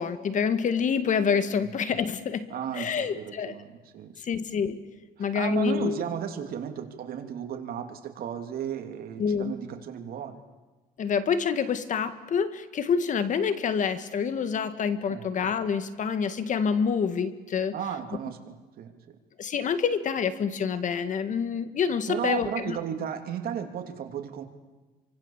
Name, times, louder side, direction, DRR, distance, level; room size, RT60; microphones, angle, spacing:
voice 1, 0.0-3.6 4.2-4.8 5.2-6.0 9.2-9.5 11.0-17.8 19.4-22.8, left 6 dB, 50° left, 11 dB, 1.9 m, -27 dB
voice 2, 2.5-4.2 5.3-10.4 15.1-15.3 17.7-19.1 22.1-24.4, right 8 dB, 60° right, 5 dB, 3.1 m, -34 dB
28.5 x 24.5 x 7.4 m, 1.2 s
cardioid pair, 110°, 17 cm